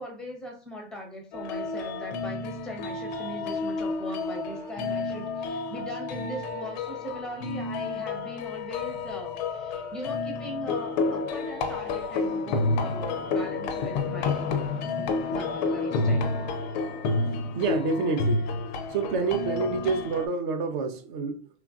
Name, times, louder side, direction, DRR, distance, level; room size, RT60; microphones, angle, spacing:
voice 1, 0.0-16.4, equal, ahead, 0.7 m, -40 dB
sound 1, 1.3-20.3, left 3 dB, 40° left, 0.4 m, -30 dB
voice 2, 17.5-18.5 18.9-21.5, right 4 dB, 45° right, 0.6 m, -28 dB
3.0 x 2.4 x 2.4 m
hypercardioid pair, 125°, 34 cm